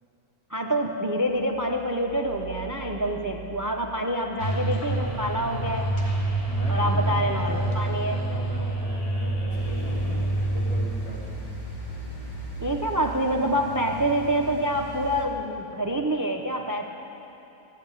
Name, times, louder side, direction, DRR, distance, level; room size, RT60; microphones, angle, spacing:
voice 1, 0.5-5.9 6.7-8.2 12.6-16.9, equal, 30° right, 3 dB, 0.3 m, -27 dB
sound 1, 1.2-15.2, right 8 dB, 50° right, 1.2 m, -41 dB
sound 2, 4.4-10.8, right 1 dB, 25° left, 1.2 m, -27 dB
voice 2, 6.4-11.5, right 1 dB, 75° left, -5 dB, 3.3 m, -38 dB
sound 3, 9.5-15.3, left 3 dB, 55° left, 2.7 m, -40 dB
15.0 x 8.4 x 9.0 m, 2.9 s
omnidirectional pair, 1.5 m